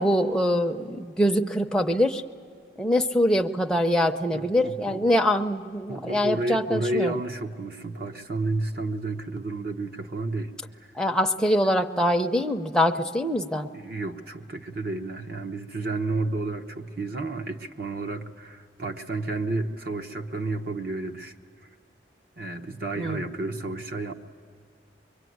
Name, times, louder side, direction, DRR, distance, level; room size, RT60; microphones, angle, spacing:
voice 1, 0.0-2.2 2.8-7.1 10.9-13.7 23.0-23.3, equal, 5° left, 2 dB, 0.7 m, -24 dB
voice 2, 4.3-5.0 5.9-10.5 13.7-21.3 22.4-24.1, right 2 dB, 55° right, 4 dB, 1.0 m, -31 dB
24.5 x 23.0 x 9.4 m, 2.3 s
head